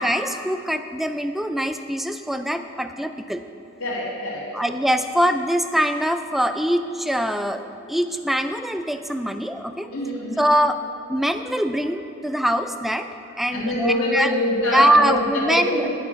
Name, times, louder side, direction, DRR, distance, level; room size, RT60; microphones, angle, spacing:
voice 1, 0.0-3.4 4.5-9.9 10.4-10.8 11.1-13.1 13.4-14.3 14.7-15.9, equal, ahead, 8 dB, 0.3 m, -23 dB
voice 2, 3.8-4.5 9.9-10.5 13.5-15.9, left 1 dB, 90° left, -8 dB, 1.9 m, -25 dB
9.6 x 8.3 x 5.1 m, 2.9 s
head